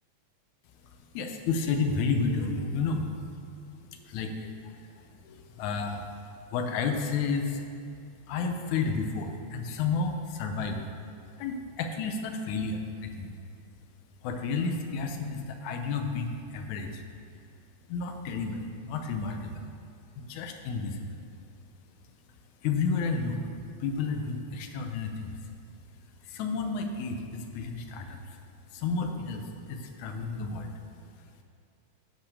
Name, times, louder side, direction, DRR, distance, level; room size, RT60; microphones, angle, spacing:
voice 1, 1.1-3.0 4.0-4.5 5.3-6.0 6.5-7.6 8.3-10.8 11.4-13.3 14.2-16.9 17.9-19.6 20.2-21.1 22.6-23.4 23.8-25.3 26.3-28.2 28.7-30.7, left 4 dB, 75° left, 5 dB, 2.1 m, -31 dB
10.0 x 6.0 x 6.3 m, 2.4 s
omnidirectional pair, 3.7 m